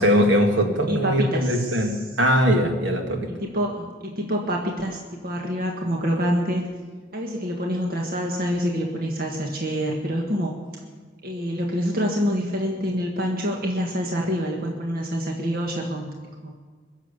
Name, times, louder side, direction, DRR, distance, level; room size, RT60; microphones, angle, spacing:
voice 1, 0.0-3.3, equal, 70° right, 3 dB, 2.2 m, -21 dB
voice 2, 0.9-2.0 3.3-6.6 7.1-10.6 11.2-16.1 16.4-16.5, equal, 50° right, 1 dB, 1.7 m, -26 dB
22.0 x 7.4 x 8.4 m, 1.5 s
head